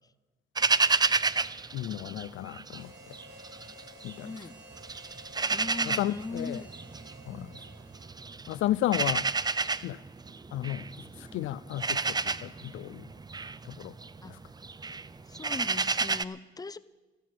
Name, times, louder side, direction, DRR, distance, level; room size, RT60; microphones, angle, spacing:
sound 1, 0.6-2.8 3.1-4.4 4.8-16.2, right 4 dB, 20° right, 0.6 m, -30 dB
voice 1, 1.7-3.2 4.0-4.3 5.8-6.6 7.3-7.5 8.5-9.3 9.8-10.0 10.5-13.1 13.6-14.0 14.3-14.4, left 14 dB, 80° left, 0.5 m, -33 dB
Harmonica, 2.7-8.5, equal, 65° right, 2.6 m, -53 dB
voice 2, 4.2-4.5 5.5-6.7 7.3-7.5 14.2-14.3 15.3-16.8, left 3 dB, 20° left, 0.7 m, -39 dB
13.5 x 11.5 x 8.8 m
cardioid pair, 90°, 20 cm